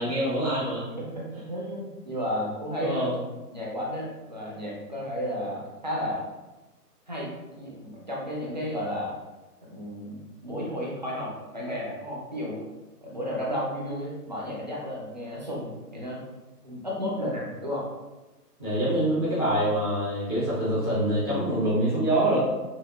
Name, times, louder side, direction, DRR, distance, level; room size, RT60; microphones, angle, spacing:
voice 1, 0.0-0.9 2.8-3.1 18.6-22.4, right 1 dB, 15° left, -13 dB, 0.6 m, -25 dB
voice 2, 1.0-3.1 3.5-6.2 7.1-9.1 9.7-12.6 13.0-16.2 16.6-17.9, equal, 30° right, -4 dB, 0.5 m, -33 dB
5.7 x 2.5 x 2.3 m, 1.1 s
figure-of-eight pair, 155°, 49 cm